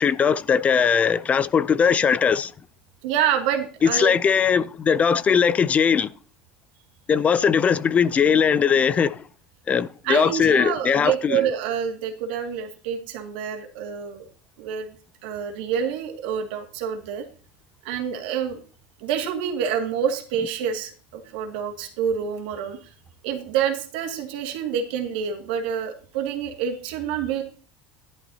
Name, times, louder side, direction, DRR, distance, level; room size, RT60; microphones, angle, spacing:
voice 1, 0.0-2.5 3.9-6.1 7.1-9.2 9.7-11.4, left 7 dB, 25° left, 0.4 m, -20 dB
voice 2, 3.0-4.2 10.0-14.2 14.6-14.9 15.2-17.3 17.8-18.6 19.0-22.9 23.2-27.4, right 8 dB, 80° right, 2.1 m, -27 dB
11.0 x 10.5 x 2.8 m
supercardioid pair, 120°, 5 cm